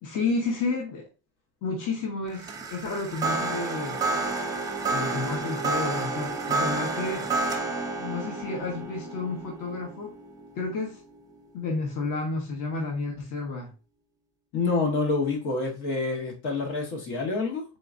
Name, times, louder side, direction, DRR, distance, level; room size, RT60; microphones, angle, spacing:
voice 1, 0.0-1.1 1.6-4.0 4.9-7.3 8.0-10.1 10.6-11.0 11.5-13.7, left 3 dB, 50° left, 0 dB, 1.1 m, -31 dB
sound 1, 2.3-11.6, right 3 dB, 10° right, 0.6 m, -30 dB
voice 2, 14.5-17.6, left 3 dB, 75° left, 1 dB, 1.5 m, -27 dB
4.0 x 3.8 x 2.6 m, 0.30 s
cardioid pair, 165°, 40 cm